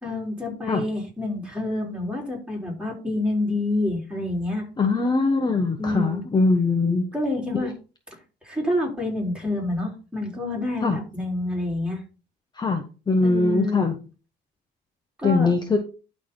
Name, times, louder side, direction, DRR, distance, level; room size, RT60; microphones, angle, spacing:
voice 1, 0.0-4.6 5.8-6.2 7.1-7.7 8.1-8.2 8.4-12.0 13.2-13.8 15.2-15.5, left 2 dB, 5° right, -1 dB, 4.1 m, -28 dB
voice 2, 4.8-7.1 7.5-7.7 10.8-11.0 12.6-14.0 15.2-15.8, left 3 dB, 25° left, 5 dB, 1.2 m, -22 dB
12.0 x 4.3 x 3.9 m, 0.33 s
cardioid pair, 110°, 17 cm